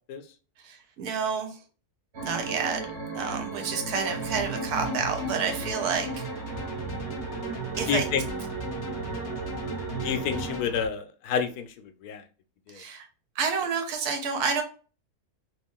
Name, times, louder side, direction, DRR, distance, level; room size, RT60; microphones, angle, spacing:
voice 1, 0.6-1.6 2.2-2.9 3.1-6.2 7.8-8.1 12.7-13.0 13.4-14.6, right 5 dB, 75° right, 5 dB, 1.3 m, -29 dB
sound 1, 2.1-10.6, right 4 dB, 50° right, 1.1 m, -35 dB
sound 2, 4.0-10.9, equal, 55° left, 1.0 m, -37 dB
voice 2, 7.9-8.2 10.0-12.2 12.7-12.8, left 7 dB, 85° left, 7 dB, 1.2 m, -29 dB
3.0 x 3.0 x 3.6 m, 0.37 s
omnidirectional pair, 1.6 m